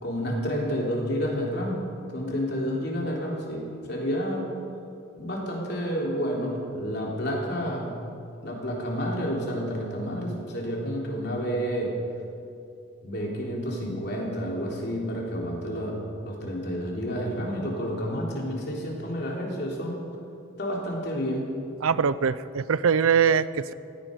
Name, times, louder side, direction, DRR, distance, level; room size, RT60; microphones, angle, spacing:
voice 1, 0.0-1.8 2.1-4.5 5.2-8.0 8.4-12.0 13.0-20.0 20.6-21.5, equal, 50° left, -2 dB, 3.5 m, -30 dB
voice 2, 21.8-23.7, right 6 dB, 85° right, 16 dB, 0.5 m, -22 dB
16.5 x 16.5 x 5.3 m, 2.5 s
head